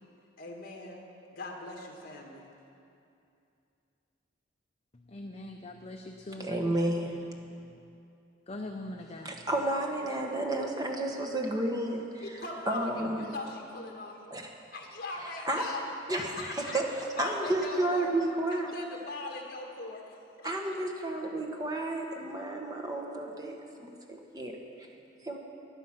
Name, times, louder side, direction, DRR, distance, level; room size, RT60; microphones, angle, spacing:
voice 1, 0.4-1.0 1.3-2.5 12.2-14.4 14.7-15.8 16.1-16.8 17.2-18.1 18.5-20.8, left 2 dB, 50° left, 0 dB, 2.1 m, -40 dB
voice 2, 4.9-7.0 7.6-7.7 8.5-9.5, left 1 dB, 35° left, 3 dB, 0.7 m, -43 dB
voice 3, 6.4-7.2 9.2-12.2 12.6-13.3 14.3-14.4 15.5-15.6 16.1-18.7 20.4-24.5 25.2-25.4, right 1 dB, 20° right, 1 dB, 1.3 m, -31 dB
17.0 x 11.0 x 5.8 m, 2.6 s
head